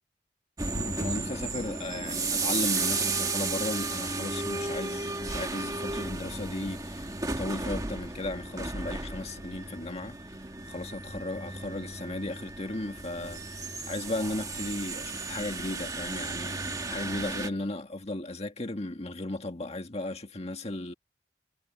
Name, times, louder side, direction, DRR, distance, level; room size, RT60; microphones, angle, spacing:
sound 1, 0.6-17.5, right 3 dB, 20° right, 1.5 m, -34 dB
voice 1, 0.7-20.9, left 2 dB, 35° left, 1.9 m, -36 dB
head